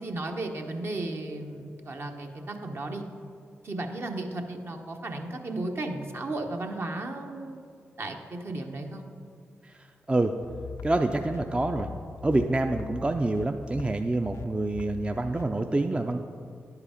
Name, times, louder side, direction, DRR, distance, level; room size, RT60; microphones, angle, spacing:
voice 1, 0.0-3.0 3.6-7.6 8.0-9.0, right 2 dB, 50° right, 3 dB, 1.0 m, -34 dB
sound 1, 10.4-15.4, left 5 dB, 75° left, 0.4 m, -42 dB
voice 2, 10.8-11.9 12.2-16.2, right 2 dB, 20° right, 5 dB, 0.4 m, -26 dB
10.5 x 4.9 x 5.0 m, 2.3 s
supercardioid pair, 45°, 5 cm